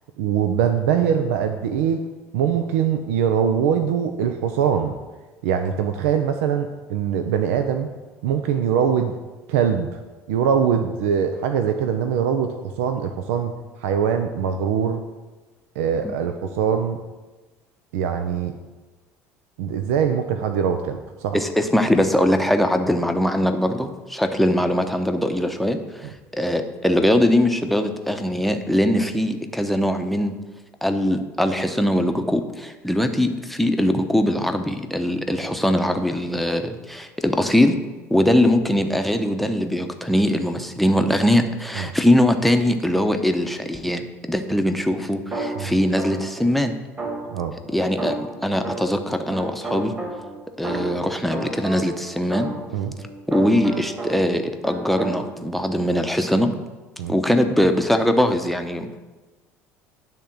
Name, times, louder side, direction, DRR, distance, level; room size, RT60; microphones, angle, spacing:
voice 1, 0.2-2.1 2.3-4.9 5.4-7.9 8.2-9.1 9.5-10.0 10.3-13.5 13.8-15.0 15.8-17.0 17.9-18.5 19.6-21.4 41.8-41.9 45.6-45.7 47.3-47.6 52.7-52.9 57.0-57.2, right 8 dB, 70° right, 7 dB, 0.5 m, -22 dB
voice 2, 21.3-30.4 30.8-37.8 38.1-46.8 47.7-49.9 50.6-52.5 53.3-56.5 57.1-59.0, left 1 dB, ahead, 6 dB, 0.8 m, -21 dB
sound 1, 45.3-46.4 47.0-49.1 49.3-54.4 54.6-55.2, right 2 dB, 30° right, 2.4 m, -32 dB
10.0 x 3.6 x 5.9 m, 1.2 s
hypercardioid pair, 65°, 8 cm